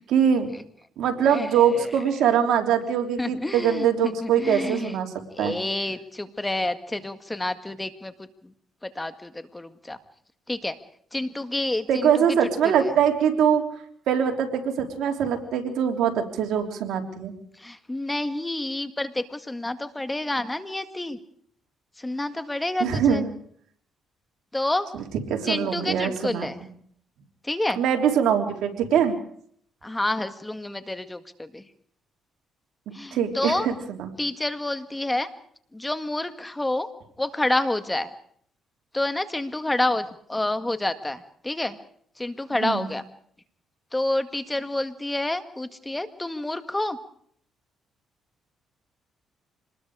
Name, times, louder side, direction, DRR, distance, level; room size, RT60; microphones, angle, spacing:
voice 1, 0.1-0.5 1.0-5.6 11.9-13.6 14.1-17.3 22.8-23.3 24.9-25.0 25.3-26.5 27.8-29.1 33.1-34.1 42.5-42.9, right 8 dB, 80° right, 3 dB, 3.4 m, -23 dB
voice 2, 1.2-1.9 3.2-4.9 5.3-8.1 8.8-10.0 10.5-10.7 11.1-12.1 12.6-12.7 17.6-21.2 22.0-23.2 24.5-24.9 25.4-26.6 27.4-27.8 29.8-31.6 32.9-33.7 34.2-35.3 35.7-36.9 37.2-38.1 38.9-41.8 42.2-43.0 43.9-47.0, left 1 dB, 15° left, 9 dB, 1.8 m, -28 dB
26.0 x 20.5 x 4.9 m, 0.63 s
cardioid pair, 90°, 0 cm